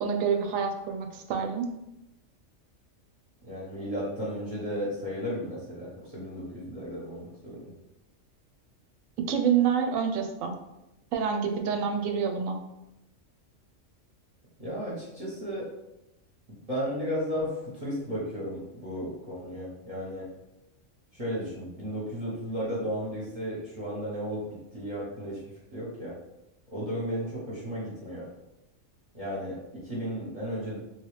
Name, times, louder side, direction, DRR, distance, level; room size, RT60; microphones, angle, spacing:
voice 1, 0.0-1.7 9.3-10.5 11.1-12.6, right 7 dB, 90° right, 4 dB, 1.0 m, -27 dB
voice 2, 3.4-7.7 14.6-15.7 16.7-20.3 21.1-24.4 24.7-25.4 25.7-26.1 26.7-28.2 29.1-29.6 29.8-30.8, equal, 30° right, -7 dB, 0.9 m, -34 dB
3.1 x 2.8 x 3.2 m, 0.92 s
omnidirectional pair, 1.3 m